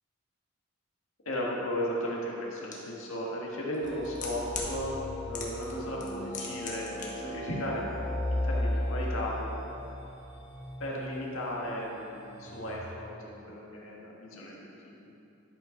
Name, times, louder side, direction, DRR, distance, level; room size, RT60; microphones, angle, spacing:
voice 1, 1.3-5.0 5.2-7.9 8.3-9.6 10.8-15.2, equal, 85° left, -3 dB, 1.8 m, -36 dB
sound 1, 2.7-2.8 3.7-4.7 5.3-5.7 6.0-7.1 7.3-7.4, left 5 dB, 40° left, 1.3 m, -38 dB
sound 2, 3.8-12.8, left 1 dB, 60° left, 1.7 m, -36 dB
11.0 x 5.3 x 5.1 m, 2.8 s
head